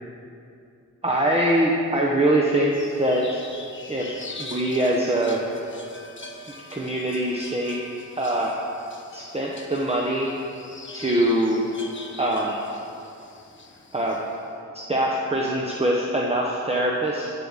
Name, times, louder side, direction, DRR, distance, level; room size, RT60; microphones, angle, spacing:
voice 1, 1.0-2.7 3.0-3.4 3.9-5.4 6.7-7.8 8.2-8.5 9.1-10.4 10.9-11.6 12.2-12.5 13.9-14.2 14.7-17.3, right 1 dB, 20° right, -3 dB, 1.0 m, -23 dB
sound 1, 2.7-14.4, left 3 dB, 40° left, 1.1 m, -42 dB
9.5 x 7.4 x 7.3 m, 2.6 s
wide cardioid pair, 95°, 30 cm